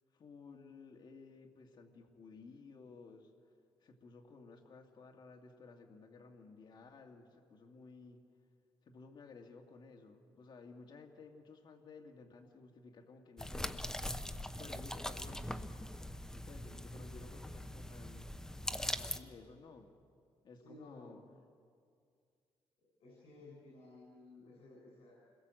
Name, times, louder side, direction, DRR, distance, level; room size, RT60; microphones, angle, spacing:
voice 1, 0.1-3.3 3.8-8.2 8.8-13.9 14.6-15.8 16.3-18.3 18.8-19.9 20.4-21.2, left 4 dB, 50° left, 2 dB, 2.2 m, -55 dB
sound 1, 13.4-19.2, left 1 dB, 5° left, 0.9 m, -42 dB
voice 2, 20.6-21.2 23.0-25.1, left 2 dB, 85° left, -3 dB, 7.2 m, -56 dB
28.0 x 21.5 x 7.8 m, 2.2 s
cardioid pair, 120°, 10 cm